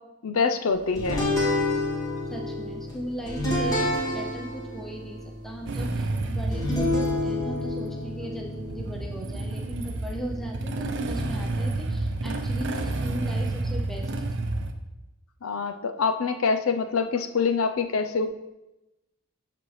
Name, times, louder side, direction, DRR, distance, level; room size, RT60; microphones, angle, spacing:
voice 1, 0.2-1.4 15.4-18.3, left 5 dB, 70° left, 8 dB, 0.5 m, -25 dB
sound 1, 1.0-11.6, left 1 dB, 15° left, 1.9 m, -30 dB
voice 2, 2.3-5.2 5.4-14.5, equal, ahead, 0 dB, 0.6 m, -38 dB
Motorcycle / Engine starting, 5.7-14.7, right 2 dB, 55° right, 0.7 m, -30 dB
12.5 x 4.2 x 3.2 m, 0.98 s
head